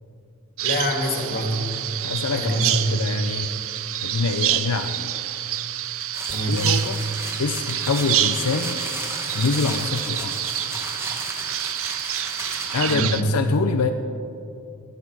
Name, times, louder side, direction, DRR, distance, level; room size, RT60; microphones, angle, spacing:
voice 1, 0.6-1.6 2.3-2.7 6.3-6.8 12.9-13.2, equal, 45° left, 2 dB, 1.9 m, -25 dB
Bird vocalization bird call bird song, 0.6-13.2, right 12 dB, 65° right, 0.5 m, -28 dB
voice 2, 2.0-3.5 4.0-5.1 6.5-7.0 7.4-8.8 9.3-10.4 12.7-13.9, left 4 dB, 85° left, 6 dB, 0.6 m, -25 dB
sound 1, 6.1-13.0, right 1 dB, 10° right, 1.4 m, -34 dB
17.5 x 11.5 x 4.8 m, 2.6 s
head